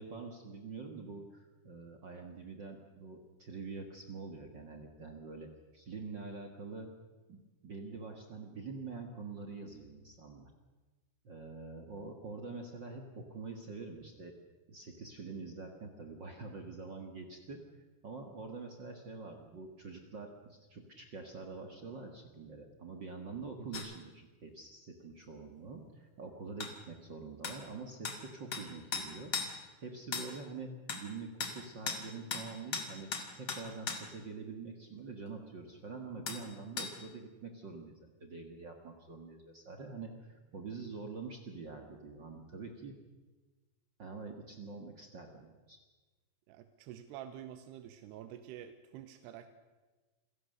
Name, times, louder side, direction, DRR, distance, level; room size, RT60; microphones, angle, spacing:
voice 1, 0.0-6.9 7.3-10.5 11.2-14.3 14.7-17.6 18.0-29.3 29.8-33.1 33.4-42.9 44.0-45.8, right 4 dB, 55° right, 3 dB, 1.2 m, -46 dB
sound 1, 23.7-23.9 26.6-26.7 27.4-27.6 28.0-28.2 28.5-28.7 28.9-29.5 30.1-30.3 30.9-31.0 31.4-31.6 31.9-32.0 32.3-32.5 32.7-34.0 36.3-36.4 36.8-36.9, left 5 dB, 40° left, 2.1 m, -37 dB
voice 2, 46.5-49.5, right 11 dB, 85° right, 10 dB, 3.0 m, -48 dB
27.5 x 17.0 x 6.7 m, 1.3 s
omnidirectional pair, 4.7 m